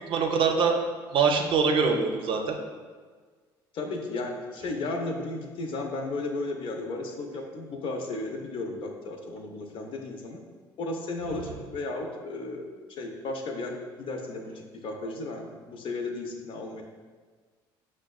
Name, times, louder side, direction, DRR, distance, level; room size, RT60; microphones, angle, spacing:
voice 1, 0.1-0.7 1.1-2.5, right 5 dB, 55° right, 3 dB, 0.5 m, -23 dB
voice 2, 3.7-10.4 10.8-16.8, left 2 dB, 55° left, 2 dB, 0.6 m, -34 dB
5.8 x 2.1 x 2.3 m, 1.5 s
supercardioid pair, 80°, 11 cm